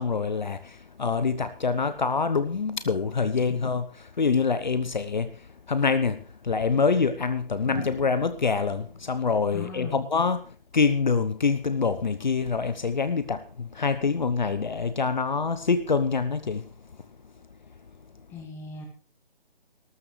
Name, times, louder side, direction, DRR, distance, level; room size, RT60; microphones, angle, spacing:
voice 1, 0.0-16.7, left 5 dB, 50° left, 1.0 m, -26 dB
sound 1, 6.1-6.2 7.6-10.6 12.2-12.5, left 1 dB, 85° left, 4.5 m, -43 dB
voice 2, 9.5-10.1 18.3-18.8, left 4 dB, 10° left, 1.6 m, -39 dB
19.0 x 12.5 x 3.3 m
figure-of-eight pair, 145°, 30 cm